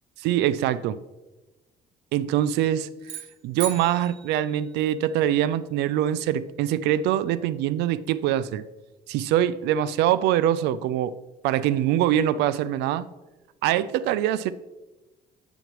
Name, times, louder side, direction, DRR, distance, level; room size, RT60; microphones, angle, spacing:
voice 1, 0.2-1.0 2.1-2.9 3.4-8.6 9.1-11.1 11.4-13.1 13.6-14.5, right 11 dB, 90° right, 0.4 m, -23 dB
sound 1, 3.0-5.3, right 8 dB, 75° right, 2.4 m, -39 dB
8.9 x 7.9 x 3.0 m
cardioid pair, 110°, 17 cm